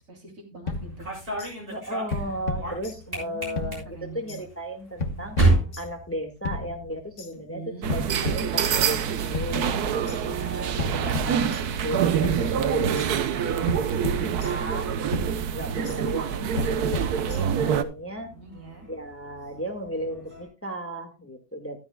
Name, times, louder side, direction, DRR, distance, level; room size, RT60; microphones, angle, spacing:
voice 1, 0.1-1.1 3.1-4.4 7.5-7.9 13.9-14.5 15.7-16.1 18.2-18.9, right 4 dB, 55° right, 2 dB, 3.7 m, -41 dB
sound 1, 0.7-1.5 2.1-3.3 3.6-4.4 5.0-6.1 6.4-7.3 7.9-9.0 9.3-10.2 10.8-12.0 12.2-13.1 13.7-14.8 15.1-16.0 16.6-17.7, left 3 dB, 50° left, 1.5 m, -34 dB
sound 2, 0.7-6.9 7.2-7.7 8.8-20.5, right 2 dB, 35° right, 7.1 m, -33 dB
voice 2, 1.7-11.5 11.8-15.0 15.5-18.4 18.9-21.8, right 1 dB, 10° left, 4 dB, 1.6 m, -35 dB
sound 3, 7.8-17.8, right 8 dB, 75° right, 1.4 m, -26 dB
14.5 x 12.5 x 2.3 m, 0.27 s
omnidirectional pair, 1.7 m